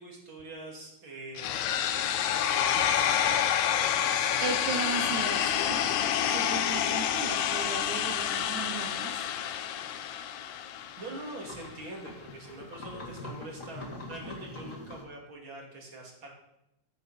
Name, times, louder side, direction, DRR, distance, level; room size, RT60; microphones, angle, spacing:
voice 1, 0.0-1.8 2.4-4.6 11.0-16.3, right 2 dB, 40° right, -1 dB, 3.1 m, -44 dB
sound 1, 1.4-11.4, left 10 dB, 80° left, 1.9 m, -28 dB
voice 2, 4.4-5.9 6.3-9.2, right 6 dB, 75° right, 7 dB, 2.3 m, -36 dB
sound 2, 7.8-7.9 9.1-9.2 9.6-15.0, left 2 dB, 30° left, 1.7 m, -44 dB
15.0 x 8.9 x 4.2 m, 0.84 s
omnidirectional pair, 3.6 m